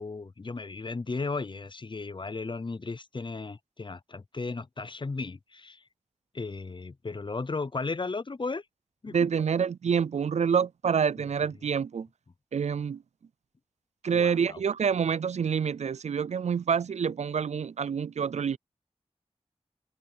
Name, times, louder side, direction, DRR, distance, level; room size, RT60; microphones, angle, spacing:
voice 1, 0.0-5.8 6.3-8.6 9.0-9.2 14.1-14.6, left 3 dB, 45° left, 0.6 m, -35 dB
voice 2, 9.1-12.1 12.5-13.0 14.0-18.6, right 7 dB, 90° right, 0.4 m, -27 dB
wide cardioid pair, 55°, 11 cm